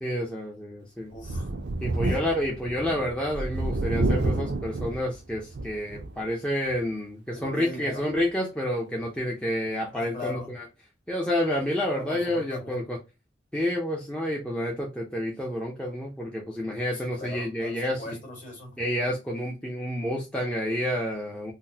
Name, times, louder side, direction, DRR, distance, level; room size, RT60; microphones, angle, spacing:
voice 1, 0.0-1.1 1.8-10.6 11.1-13.0 13.5-18.2 18.8-21.5, left 1 dB, 5° left, 0.5 m, -29 dB
voice 2, 1.1-1.5 2.1-2.2 7.3-8.0 9.9-10.5 11.9-12.8 16.9-18.8, left 2 dB, 45° left, 1.8 m, -39 dB
Thunder, 1.1-6.3 6.7-6.8 8.1-8.2, right 2 dB, 65° right, 0.5 m, -29 dB
3.8 x 2.1 x 2.7 m
head